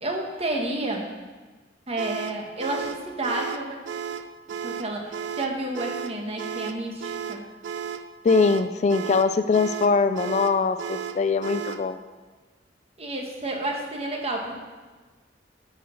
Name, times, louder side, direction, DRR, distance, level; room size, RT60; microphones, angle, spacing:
voice 1, 0.0-1.1 1.9-3.8 4.6-7.4 13.0-14.6, right 2 dB, 35° right, 1 dB, 1.3 m, -30 dB
sound 1, 2.0-11.9, right 7 dB, 90° right, 0.5 m, -34 dB
voice 2, 8.2-12.0, left 4 dB, 40° left, 10 dB, 0.3 m, -22 dB
11.0 x 4.9 x 6.4 m, 1.3 s
head